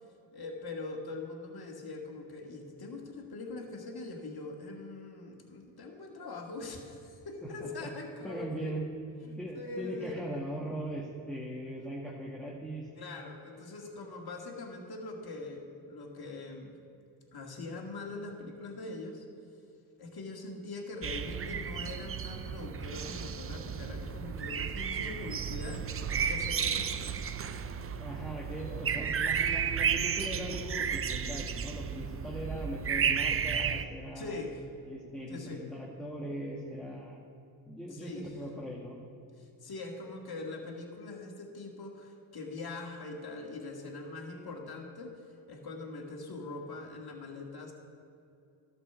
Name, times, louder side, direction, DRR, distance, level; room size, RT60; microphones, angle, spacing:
voice 1, 0.3-8.7 9.2-10.4 13.0-16.8 17.3-19.2 20.0-25.8 26.3-27.3 34.2-34.6 35.3-35.6 37.9-38.3 39.4-45.2 45.5-47.7, left 3 dB, 50° left, 2 dB, 2.0 m, -42 dB
voice 2, 7.4-7.9 8.2-8.9 9.4-12.9 28.0-34.3 34.8-37.2 37.7-39.0, right 1 dB, ahead, -4 dB, 1.7 m, -40 dB
sound 1, 21.0-33.8, right 7 dB, 30° right, 0.5 m, -33 dB
12.0 x 5.3 x 6.9 m, 2.7 s
supercardioid pair, 60°, 49 cm